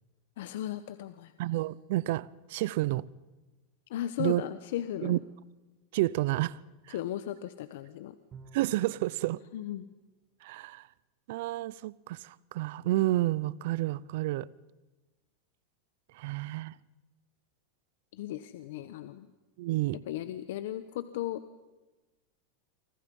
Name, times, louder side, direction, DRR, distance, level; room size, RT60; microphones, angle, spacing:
voice 1, 0.4-1.3 3.9-5.2 6.9-8.1 9.5-9.9 18.1-19.3 20.1-21.4, left 12 dB, 70° left, 1.1 m, -36 dB
voice 2, 1.4-3.0 4.2-4.4 5.0-5.2 5.9-6.6 8.5-9.4 10.4-10.8 11.3-14.5 16.2-16.7 19.6-20.0, right 16 dB, 65° right, 0.7 m, -30 dB
Bowed string instrument, 8.3-9.2, right 6 dB, 25° right, 2.9 m, -51 dB
29.0 x 25.0 x 5.5 m
supercardioid pair, 135°, 0 cm